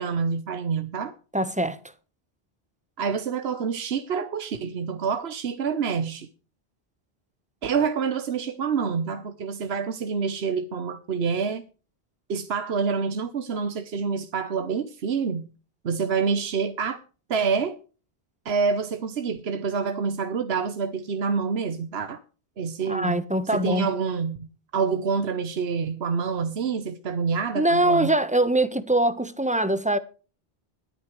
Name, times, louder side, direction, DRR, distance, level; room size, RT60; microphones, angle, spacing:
voice 1, 0.0-1.2 3.0-6.3 7.6-11.6 12.3-15.5 15.8-17.0 17.3-17.8 18.4-22.2 22.6-23.3 23.5-28.2, right 5 dB, 80° right, 1.2 m, -27 dB
voice 2, 1.3-1.8 22.9-23.9 27.5-30.0, right 1 dB, 5° right, 1.1 m, -23 dB
21.5 x 9.3 x 3.2 m
omnidirectional pair, 1.1 m